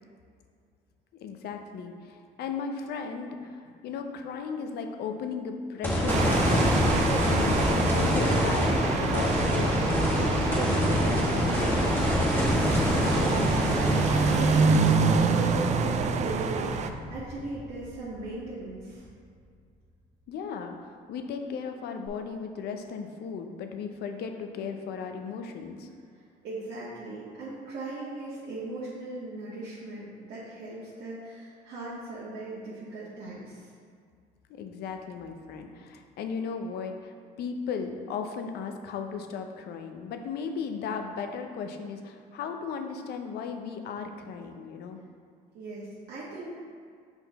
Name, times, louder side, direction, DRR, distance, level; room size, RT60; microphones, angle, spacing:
voice 1, 1.2-7.0 7.2-11.5 11.8-12.0 20.3-25.9 34.5-45.0, left 5 dB, 70° left, 5 dB, 0.6 m, -36 dB
sound 1, 5.8-18.2 18.6-18.7 22.1-22.2, left 1 dB, 15° left, 1.4 m, -26 dB
sound 2, 6.1-16.9, right 5 dB, 45° right, 0.4 m, -27 dB
voice 2, 13.1-19.1 26.1-33.7 45.5-46.6, right 2 dB, 75° right, -8 dB, 1.3 m, -38 dB
5.7 x 4.5 x 4.0 m, 2.2 s
cardioid pair, 110°, 17 cm